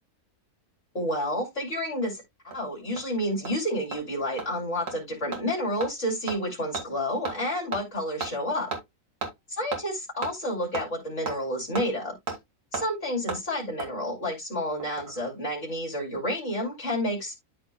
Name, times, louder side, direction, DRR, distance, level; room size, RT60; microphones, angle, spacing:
voice 1, 0.9-2.2 2.5-8.7 9.6-12.1 12.7-17.3, equal, 50° left, 3.6 m, -30 dB
Hammer, 2.0-2.1 2.5-2.6 3.0-3.1 3.5-3.6 3.9-4.0 4.4-4.5 4.9-5.0 5.3-5.4 5.8-5.9 6.3-6.4 6.7-6.9 7.3-7.4 7.7-7.8 8.2-8.3 8.7-8.8 9.2-9.3 9.7-9.8 10.2-10.3 10.7-10.9 11.3-11.4 11.8-11.9 12.3-12.4 12.7-12.9 13.3-13.4 13.8-13.9 14.8-15.2 15.5-15.6, right 4 dB, 80° right, 2.5 m, -33 dB
12.5 x 4.5 x 2.3 m
omnidirectional pair, 1.6 m